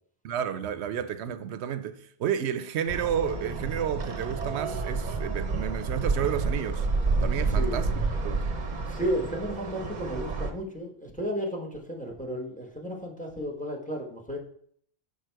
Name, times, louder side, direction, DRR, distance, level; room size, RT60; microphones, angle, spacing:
voice 1, 0.2-6.9 7.2-7.9 8.2-8.5, right 9 dB, 85° right, 0.9 m, -31 dB
sound 1, 2.9-10.5, right 3 dB, 45° right, 0.8 m, -29 dB
voice 2, 7.4-7.8 8.9-14.4, equal, 10° left, 1.1 m, -33 dB
6.6 x 5.3 x 4.5 m
omnidirectional pair, 1.1 m